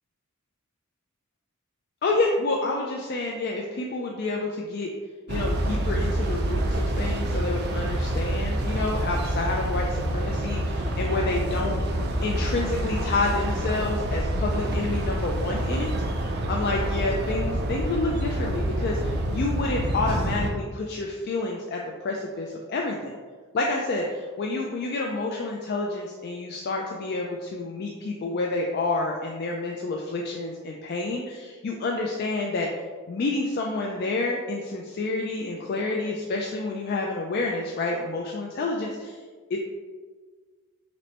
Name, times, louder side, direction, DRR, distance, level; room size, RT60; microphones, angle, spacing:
voice 1, 2.0-4.9 5.3-11.8 12.2-23.2 23.5-32.7 33.1-39.2 39.5-39.6, left 2 dB, 45° left, 0 dB, 0.3 m, -29 dB
sound 1, 5.3-20.5, right 1 dB, 45° right, 0.4 m, -27 dB
5.9 x 2.1 x 2.9 m, 1.5 s
head